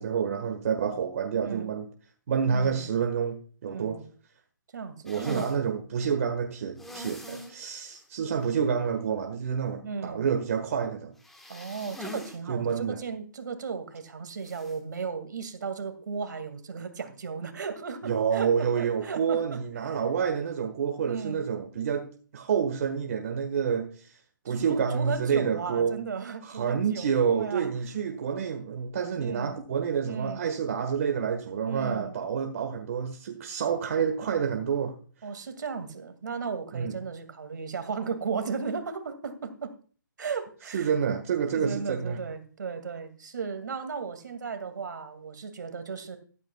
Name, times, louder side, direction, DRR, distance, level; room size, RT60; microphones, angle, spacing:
voice 1, 0.0-1.9 2.3-4.0 5.0-11.1 12.5-13.0 18.0-22.1 22.3-24.2 24.4-25.9 26.4-34.9 36.7-37.0 40.7-42.2, right 7 dB, 45° right, 1.5 m, -28 dB
voice 2, 1.4-1.8 2.5-2.9 3.7-4.0 4.7-5.5 9.8-10.2 11.5-19.6 19.9-20.0 21.0-21.4 24.5-27.7 29.2-29.5 30.0-30.5 31.6-32.2 35.2-39.7 40.2-40.9 41.6-46.2, right 5 dB, 65° right, 2.3 m, -35 dB
Snotty Nose, 5.1-5.6 6.8-7.6 7.9-8.0 8.4-8.5 11.2-12.4 12.7-12.8 14.4-14.8, left 1 dB, 5° left, 1.4 m, -42 dB
14.0 x 12.5 x 2.3 m
hypercardioid pair, 160°, 11 cm